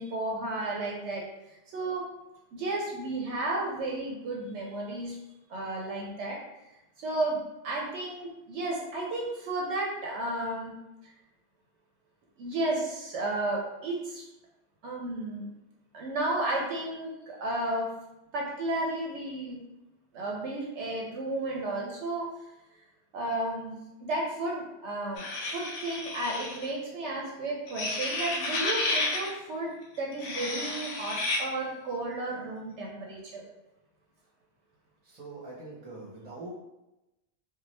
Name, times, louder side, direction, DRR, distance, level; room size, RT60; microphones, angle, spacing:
voice 1, 0.0-2.0 2.5-5.2 5.5-6.4 7.0-10.7 12.4-14.3 14.8-15.5 15.9-17.9 18.3-19.6 20.1-22.2 23.1-25.3 25.5-33.4, right 2 dB, 75° right, -1 dB, 0.8 m, -33 dB
sound 1, 25.2-26.7 27.7-29.3 30.1-31.4, left 2 dB, 85° left, 0.9 m, -31 dB
voice 2, 35.0-36.5, right 3 dB, 35° right, -4 dB, 0.9 m, -43 dB
2.7 x 2.3 x 3.1 m, 0.96 s
omnidirectional pair, 1.2 m